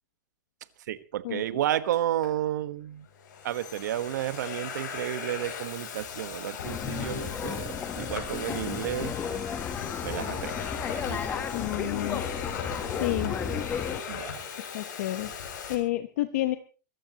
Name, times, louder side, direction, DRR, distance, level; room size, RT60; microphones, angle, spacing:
voice 1, 0.9-3.1 3.4-9.1 10.0-10.7 11.1-11.4 14.1-14.5, right 12 dB, 70° right, 13 dB, 1.3 m, -32 dB
Domestic sounds home sounds, 1.9-2.3 3.0-15.7, left 7 dB, 75° left, 6.3 m, -39 dB
sound 1, 6.6-14.0, left 7 dB, 15° left, 1.1 m, -33 dB
voice 2, 11.5-12.2 13.0-13.4 14.7-15.3 15.7-16.6, left 16 dB, 55° left, 10 dB, 1.0 m, -29 dB
24.5 x 14.5 x 3.0 m, 0.35 s
supercardioid pair, 175°, 10 cm